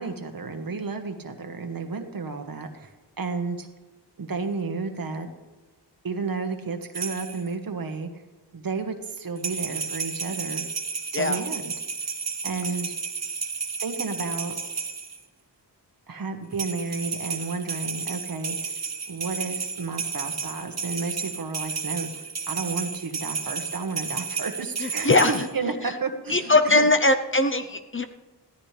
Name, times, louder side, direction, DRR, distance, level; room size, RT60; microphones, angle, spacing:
voice 1, 0.0-3.7 4.2-5.3 6.0-8.2 8.5-10.7 11.1-11.7 12.4-12.9 13.8-14.5 16.1-18.7 19.1-26.9, right 4 dB, 55° right, 6 dB, 1.5 m, -32 dB
sound 1, 6.9-7.5 9.4-15.2 16.5-25.5, right 5 dB, 40° right, 1.3 m, -32 dB
voice 2, 24.8-25.4 25.8-25.9 26.3-28.0, left 2 dB, 30° left, 8 dB, 0.8 m, -21 dB
16.5 x 13.5 x 3.4 m, 1.2 s
wide cardioid pair, 95°, 42 cm